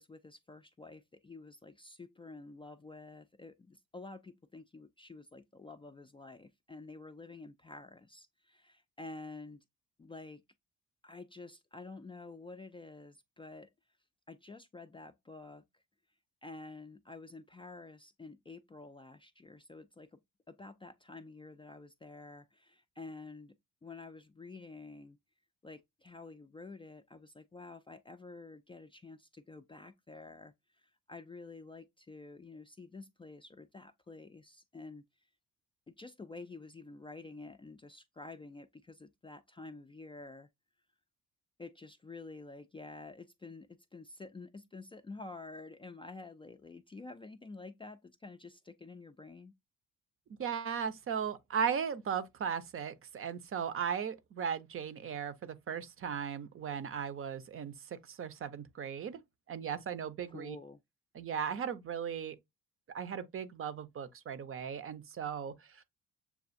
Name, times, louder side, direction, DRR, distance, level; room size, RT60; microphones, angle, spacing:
voice 1, 0.0-9.6 10.0-10.4 11.0-13.7 14.3-15.8 16.4-20.2 20.5-23.6 23.8-25.2 25.6-35.0 35.9-40.5 41.6-49.5 60.3-60.8, left 3 dB, 20° left, 0.3 m, -49 dB
voice 2, 50.4-59.2 59.5-60.6 61.1-62.4 62.9-65.8, right 7 dB, 45° right, 0.6 m, -37 dB
6.9 x 2.4 x 2.5 m
cardioid pair, 90°, 30 cm